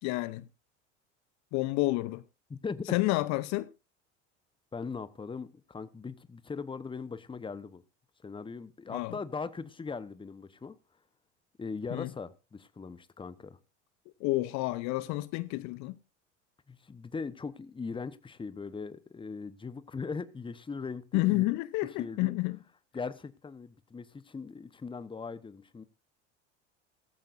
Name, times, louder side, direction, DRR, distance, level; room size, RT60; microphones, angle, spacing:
voice 1, 0.0-0.5 1.5-2.2 2.9-3.7 8.9-9.1 11.9-12.1 14.2-16.0 21.1-22.6, left 20 dB, 50° left, 0.8 m, -29 dB
voice 2, 2.5-2.9 4.7-7.8 8.2-10.8 11.6-13.6 16.7-21.4 22.0-22.3 22.9-25.8, left 5 dB, 15° left, 1.1 m, -40 dB
16.5 x 14.5 x 2.6 m
hypercardioid pair, 75°, 35 cm